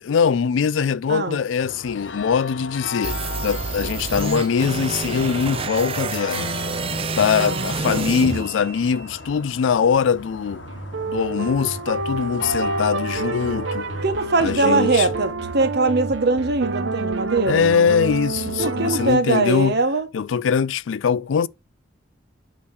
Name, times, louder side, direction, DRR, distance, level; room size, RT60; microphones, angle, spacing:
voice 1, 0.0-6.5 7.2-10.6 11.1-13.9 14.4-15.1 17.4-19.8 20.1-21.5, left 6 dB, 85° left, 0.4 m, -22 dB
sound 1, 1.6-15.3, left 3 dB, 70° left, 0.9 m, -36 dB
sound 2, 3.0-9.1, right 4 dB, 30° right, 0.4 m, -28 dB
voice 2, 7.4-8.1 14.0-17.7 18.6-20.1, right 3 dB, 60° right, 1.2 m, -22 dB
sound 3, 10.1-19.1, right 3 dB, 90° right, 0.8 m, -28 dB
8.6 x 3.1 x 6.2 m
head